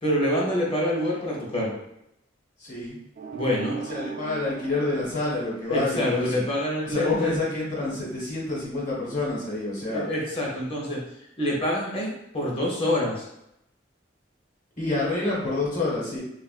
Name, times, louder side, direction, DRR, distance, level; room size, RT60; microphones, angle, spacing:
voice 1, 0.0-1.8 3.3-3.7 5.7-7.4 9.9-13.3, left 1 dB, 30° left, -3 dB, 0.8 m, -26 dB
voice 2, 2.6-3.0 3.9-6.2 6.9-10.1 14.8-16.2, left 2 dB, 45° left, -5 dB, 1.1 m, -27 dB
sound 1, 3.2-6.1, right 6 dB, 50° right, 0.4 m, -37 dB
3.4 x 2.4 x 2.4 m, 0.80 s
head